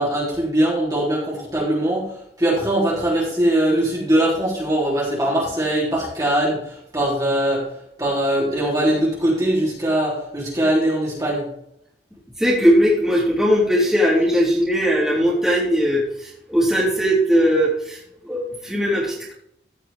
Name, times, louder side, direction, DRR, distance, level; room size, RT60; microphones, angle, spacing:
voice 1, 0.0-2.1 2.4-7.7 8.0-11.5, right 1 dB, 20° right, -6 dB, 3.5 m, -21 dB
voice 2, 12.4-19.3, equal, 5° right, -7 dB, 3.6 m, -19 dB
15.5 x 5.9 x 3.5 m, 0.73 s
head